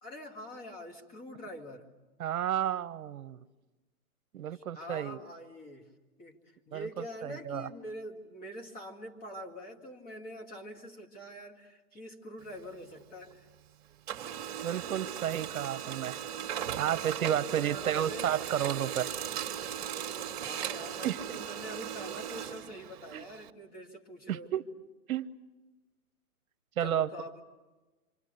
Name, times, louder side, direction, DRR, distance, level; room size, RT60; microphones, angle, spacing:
voice 1, 0.0-1.9 4.5-5.9 6.2-13.5 17.4-18.4 20.1-24.5 26.8-27.4, equal, 20° left, 2 dB, 2.2 m, -45 dB
voice 2, 2.2-3.4 4.3-5.2 6.7-7.7 14.6-16.2 16.8-19.1 21.0-21.2 23.1-23.2 24.3-24.6 25.1-25.3 26.8-27.1, right 10 dB, 65° right, 13 dB, 1.1 m, -32 dB
Printer, 12.4-13.6 13.9-23.5, right 9 dB, 45° right, 1.9 m, -38 dB
27.5 x 26.5 x 6.7 m, 1.2 s
hypercardioid pair, 145°, 44 cm